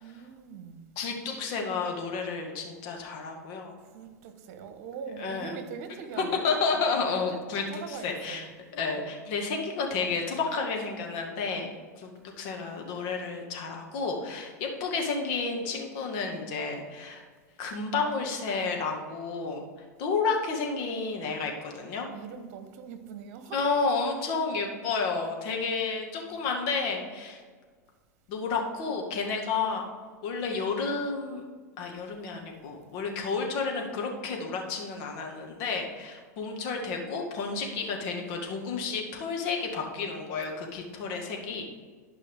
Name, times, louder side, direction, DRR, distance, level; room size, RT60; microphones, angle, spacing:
voice 1, 0.0-1.0 3.9-6.8 7.3-8.5 22.1-23.6, right 6 dB, 55° right, 1.2 m, -42 dB
voice 2, 1.0-3.7 5.2-5.6 6.2-11.7 12.0-12.1 12.4-17.2 17.6-19.6 20.0-22.1 23.5-27.4 28.3-29.8 30.2-31.4 31.8-41.6, left 4 dB, 55° left, 2.0 m, -31 dB
12.0 x 5.4 x 3.7 m
hypercardioid pair, 95°, 9 cm